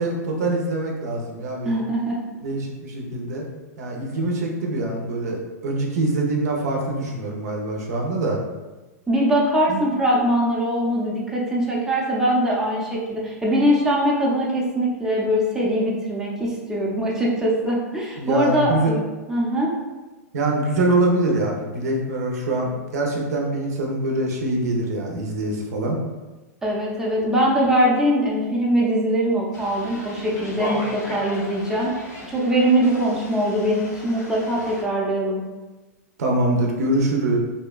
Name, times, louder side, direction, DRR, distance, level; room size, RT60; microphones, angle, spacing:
voice 1, 0.0-1.8 2.4-3.5 3.8-8.4 9.7-9.8 18.2-18.9 20.3-26.0 36.2-37.4, right 2 dB, 70° right, 0 dB, 0.6 m, -24 dB
voice 2, 1.6-2.2 9.1-19.0 19.3-19.7 26.6-35.4, equal, 5° right, -4 dB, 0.5 m, -22 dB
sound 1, 29.5-34.8, equal, 90° left, 0.8 m, -36 dB
2.7 x 2.2 x 2.3 m, 1.2 s
hypercardioid pair, 125°, 9 cm